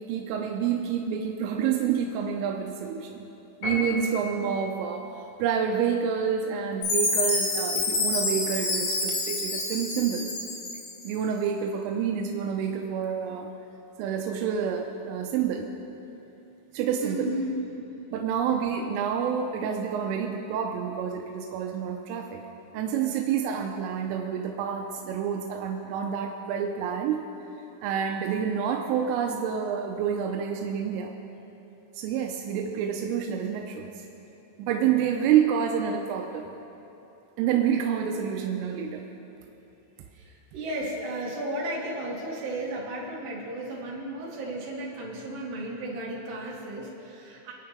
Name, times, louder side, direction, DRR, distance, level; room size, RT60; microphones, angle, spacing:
voice 1, 0.0-3.3 3.6-10.3 11.0-13.5 14.0-15.7 16.7-17.3 18.1-22.4 22.7-27.3 27.8-31.1 32.0-34.0 34.6-36.5 37.4-39.1, right 8 dB, 85° right, 2 dB, 3.2 m, -28 dB
Piano, 3.6-4.5, left 2 dB, 40° left, 5.0 m, -33 dB
Chime, 6.8-11.1, left 3 dB, 65° left, 3.8 m, -28 dB
voice 2, 16.9-17.6 40.2-47.5, right 1 dB, 60° right, -5 dB, 4.1 m, -34 dB
28.0 x 9.5 x 3.4 m, 3.0 s
omnidirectional pair, 5.8 m